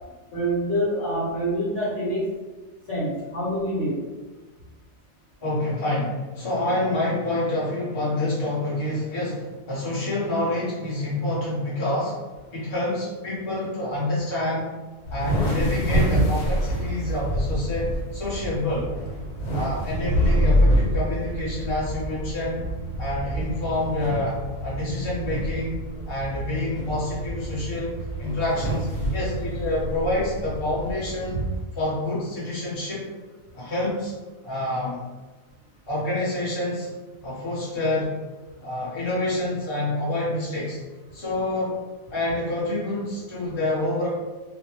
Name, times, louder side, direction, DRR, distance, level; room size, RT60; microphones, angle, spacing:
voice 1, 0.3-2.2 2.9-4.0, equal, 65° left, -7 dB, 1.1 m, -26 dB
voice 2, 5.4-12.2 12.5-14.7 15.1-18.9 19.5-22.6 23.0-24.4 24.6-25.8 26.1-31.4 31.7-33.1 33.5-34.1 34.4-35.0 35.9-36.9 37.2-38.1 38.6-40.8 41.1-41.7 42.1-44.1, left 1 dB, 25° left, -9 dB, 0.7 m, -27 dB
sound 1, 15.0-31.6, equal, 80° left, 1.3 m, -27 dB
2.6 x 2.0 x 2.9 m, 1.2 s
omnidirectional pair, 1.4 m